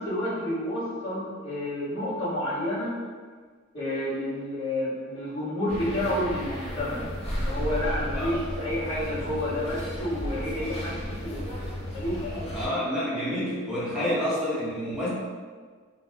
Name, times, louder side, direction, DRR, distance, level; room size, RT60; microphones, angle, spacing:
voice 1, 0.0-3.0 3.7-7.1 7.4-11.5 11.9-12.6 13.9-14.1, left 1 dB, 55° left, -16 dB, 1.2 m, -30 dB
sound 1, 5.7-12.7, equal, 30° left, 0.6 m, -33 dB
voice 2, 12.5-15.1, equal, ahead, -10 dB, 0.8 m, -28 dB
2.6 x 2.1 x 3.4 m, 1.5 s
head